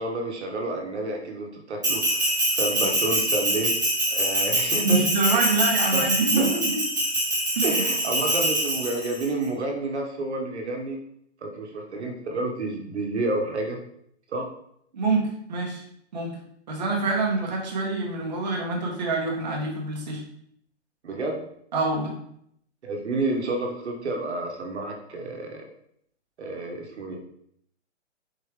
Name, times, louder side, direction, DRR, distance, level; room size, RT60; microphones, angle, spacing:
voice 1, 0.0-3.7 4.1-5.1 5.3-5.5 5.9-6.1 6.4-6.5 7.6-11.0 11.4-13.8 14.3-14.5 21.0-21.4 22.8-25.6 26.4-27.2, right 2 dB, 70° right, 2 dB, 1.2 m, -30 dB
Bell, 1.8-9.3, right 1 dB, 15° right, 0.5 m, -24 dB
voice 2, 4.8-6.8 7.5-7.8 14.9-15.8 16.1-16.4 16.7-20.2 21.7-22.2, right 3 dB, 40° right, -2 dB, 1.0 m, -26 dB
4.6 x 3.1 x 3.3 m, 0.70 s
hypercardioid pair, 180°, 35 cm